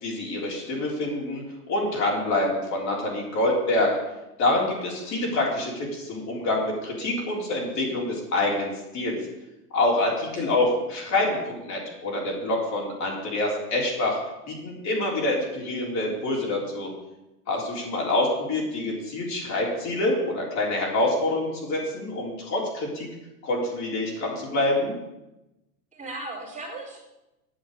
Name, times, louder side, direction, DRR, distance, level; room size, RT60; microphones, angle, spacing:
voice 1, 0.0-3.9 4.4-9.1 9.7-14.2 14.5-16.9 17.5-23.1 23.4-24.9, left 2 dB, 35° left, -3 dB, 4.2 m, -26 dB
voice 2, 17.5-18.0 25.9-27.0, right 2 dB, 15° right, -2 dB, 3.9 m, -38 dB
9.2 x 7.1 x 8.2 m, 0.95 s
hypercardioid pair, 115°, 46 cm